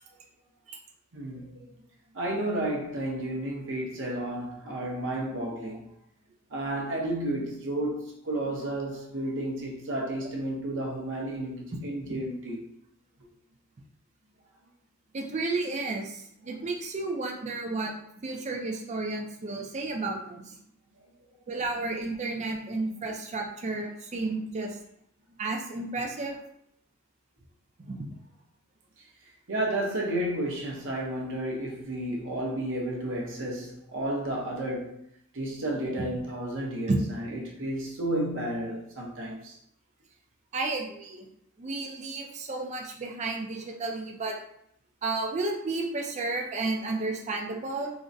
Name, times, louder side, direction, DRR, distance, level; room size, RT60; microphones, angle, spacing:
voice 1, 1.1-1.7 2.1-5.8 6.5-12.6 29.5-35.0 35.3-39.6, right 1 dB, 60° right, 0.8 m, -32 dB
voice 2, 15.1-17.9 18.2-20.6 21.5-24.8 25.4-26.4 27.9-28.0 36.9-37.0 40.5-41.3 41.6-44.4 45.0-47.9, right 3 dB, 30° right, 0.4 m, -32 dB
3.7 x 2.1 x 2.6 m
head